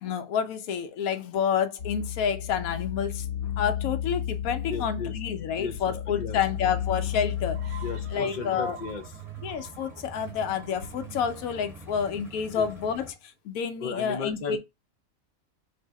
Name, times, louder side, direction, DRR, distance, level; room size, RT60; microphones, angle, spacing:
voice 1, 0.0-7.8 8.1-8.8 9.4-13.1 13.4-14.6, left 7 dB, 90° left, 1.0 m, -29 dB
sound 1, 1.8-8.2, left 10 dB, 65° left, 1.0 m, -33 dB
voice 2, 4.7-5.1 5.6-6.4 7.8-9.0 12.5-12.7 13.8-14.6, left 5 dB, 50° left, 0.6 m, -35 dB
sound 2, 6.3-13.1, right 1 dB, ahead, 0.9 m, -47 dB
sound 3, 7.5-13.0, right 10 dB, 60° right, 0.8 m, -46 dB
3.3 x 2.7 x 4.5 m
omnidirectional pair, 1.4 m